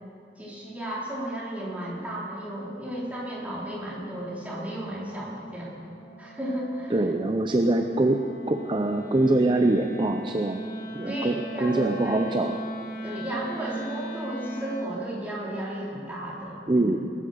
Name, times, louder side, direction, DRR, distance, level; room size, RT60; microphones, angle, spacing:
voice 1, 0.4-5.8 6.2-7.0 11.0-12.2 13.0-16.9, right 1 dB, 10° right, -6 dB, 3.4 m, -34 dB
Wind instrument woodwind instrument, 3.6-15.1, right 1 dB, 55° left, 1.6 m, -39 dB
voice 2, 6.9-10.7 10.9-12.6 16.7-17.1, right 2 dB, 25° right, 5 dB, 0.6 m, -24 dB
19.5 x 10.0 x 6.9 m, 2.6 s
head